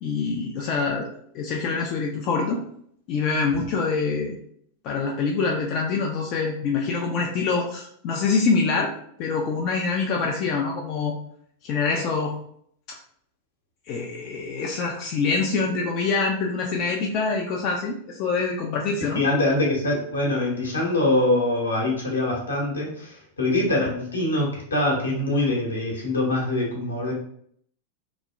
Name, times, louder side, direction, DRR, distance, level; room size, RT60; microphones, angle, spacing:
voice 1, 0.0-1.1 1.3-2.6 3.1-4.4 4.8-8.9 9.2-11.1 11.6-12.3 12.9-13.0 13.9-19.3, left 4 dB, 40° left, 0 dB, 0.3 m, -25 dB
voice 2, 19.1-27.1, left 2 dB, 75° left, -2 dB, 0.8 m, -24 dB
2.9 x 2.0 x 2.4 m, 0.65 s
figure-of-eight pair, 90°, 0 cm